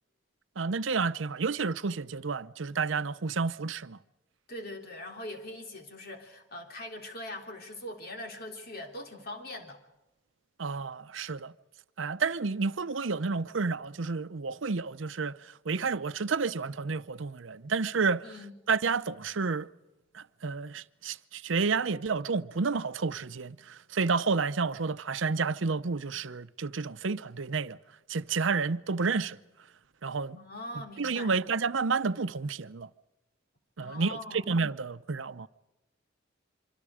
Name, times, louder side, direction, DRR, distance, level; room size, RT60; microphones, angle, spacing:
voice 1, 0.6-4.0 10.6-11.5 12.0-15.3 15.7-18.2 18.7-19.7 20.1-27.8 28.1-29.4 30.0-30.4 31.0-32.9 33.8-35.5, right 4 dB, 80° right, 0.7 m, -30 dB
voice 2, 4.5-9.8 18.2-18.5 30.3-31.3 33.8-34.5, left 1 dB, 55° left, 3.5 m, -42 dB
26.0 x 25.0 x 5.0 m
head